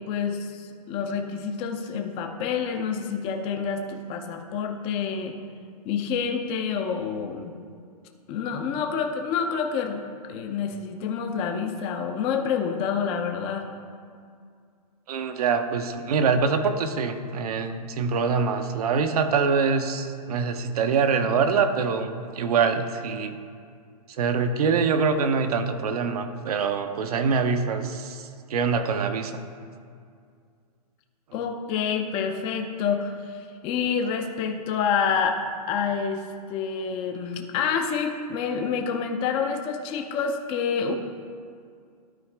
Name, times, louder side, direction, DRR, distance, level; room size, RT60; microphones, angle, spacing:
voice 1, 0.1-5.4 5.8-7.5 8.3-10.0 10.3-13.7 31.3-35.4 35.7-36.2 36.5-40.9, left 6 dB, 25° left, 4 dB, 0.6 m, -28 dB
voice 2, 15.1-23.3 24.1-29.4, right 5 dB, 65° right, 8 dB, 0.8 m, -24 dB
12.5 x 4.7 x 3.4 m, 2.2 s
hypercardioid pair, 145°, 20 cm